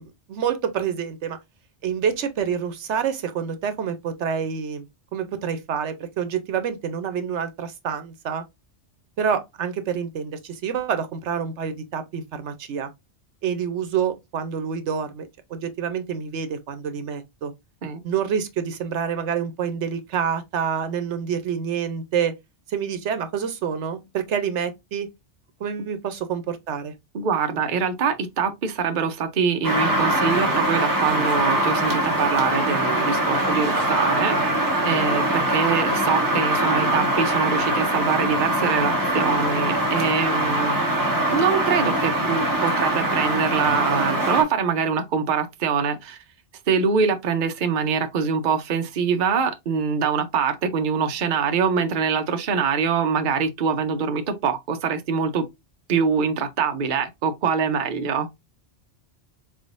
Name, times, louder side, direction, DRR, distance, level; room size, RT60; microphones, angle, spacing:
voice 1, 0.0-1.4 1.8-4.9 5.1-8.4 9.2-12.9 13.4-17.5 18.0-22.3 22.7-25.1 25.6-26.9, right 7 dB, 80° right, 1.0 m, -27 dB
voice 2, 27.1-34.4 34.8-40.7 41.3-46.2 46.7-55.4 55.9-58.3, right 6 dB, 50° right, 0.7 m, -24 dB
sound 1, 29.6-44.4, right 1 dB, 20° right, 1.1 m, -22 dB
4.0 x 3.6 x 2.5 m
omnidirectional pair, 1.2 m